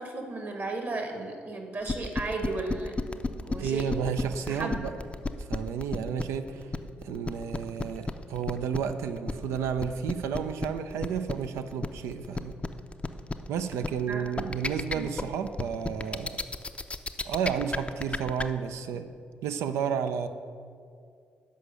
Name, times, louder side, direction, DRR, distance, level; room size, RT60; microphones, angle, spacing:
voice 1, 0.0-2.9 3.4-3.8 4.5-4.8 14.1-14.2 14.9-15.1, right 3 dB, 50° right, 3 dB, 1.5 m, -34 dB
sound 1, 1.9-18.4, left 3 dB, 25° left, 0.5 m, -32 dB
voice 2, 3.6-4.9 5.5-6.7 7.0-12.6 13.5-16.4 17.2-19.1 19.4-20.3, right 7 dB, 75° right, 9 dB, 0.4 m, -31 dB
6.5 x 5.1 x 6.7 m, 2.3 s
hypercardioid pair, 45°, 5 cm